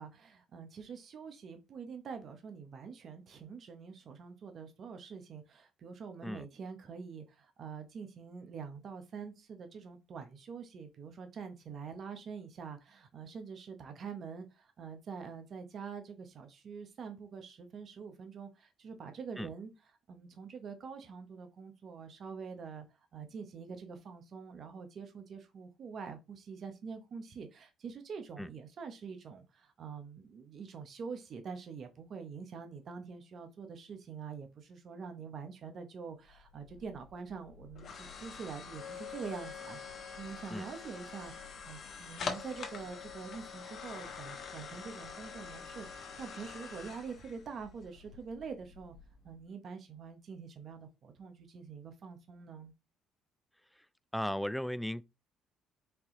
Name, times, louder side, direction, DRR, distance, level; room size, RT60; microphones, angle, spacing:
voice 1, 0.0-19.7 20.1-22.8 23.1-41.3 41.6-48.9 49.2-52.7, right 5 dB, 55° right, 0.9 m, -45 dB
sound 1, 36.3-49.3, left 6 dB, 55° left, 1.2 m, -45 dB
voice 2, 54.1-55.0, left 1 dB, 5° left, 0.3 m, -35 dB
4.5 x 2.8 x 3.8 m
supercardioid pair, 75°, 0 cm